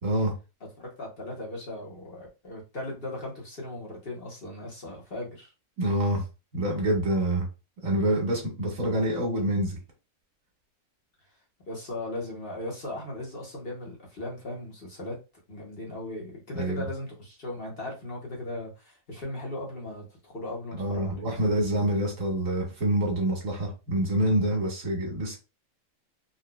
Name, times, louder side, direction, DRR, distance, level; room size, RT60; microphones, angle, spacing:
voice 1, 0.0-0.3 5.8-6.2 6.5-7.5 7.8-9.8 16.5-16.8 20.8-25.4, right 1 dB, 90° right, 0 dB, 1.7 m, -26 dB
voice 2, 0.8-5.5 11.7-15.2 15.5-21.2, left 1 dB, 45° left, -2 dB, 1.3 m, -37 dB
4.0 x 2.6 x 2.2 m, 0.29 s
omnidirectional pair, 1.4 m